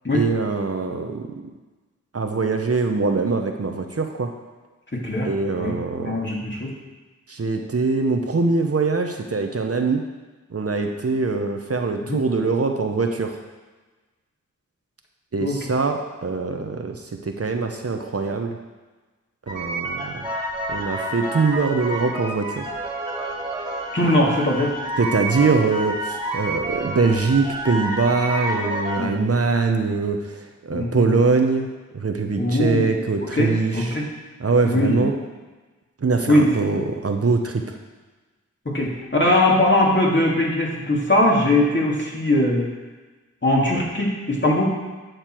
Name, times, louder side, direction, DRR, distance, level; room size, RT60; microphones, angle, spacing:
voice 1, 0.1-1.3 2.1-4.3 5.2-6.2 7.3-10.0 10.5-13.4 15.3-18.6 19.5-20.2 20.7-22.7 25.0-31.7 31.9-34.0 34.4-35.1 36.0-37.8, right 4 dB, 50° right, 4 dB, 0.8 m, -23 dB
voice 2, 4.9-5.3 5.6-6.7 12.1-12.2 15.4-15.6 23.9-24.7 29.0-29.2 30.7-31.1 32.4-32.9 33.4-34.1 34.6-35.1 36.3-36.5 38.7-42.7 43.4-44.6, left 1 dB, 35° left, -3 dB, 2.3 m, -20 dB
sound 1, 19.5-29.0, right 1 dB, 15° right, 2.1 m, -29 dB
9.1 x 6.6 x 4.5 m, 1.3 s
cardioid pair, 45°, 31 cm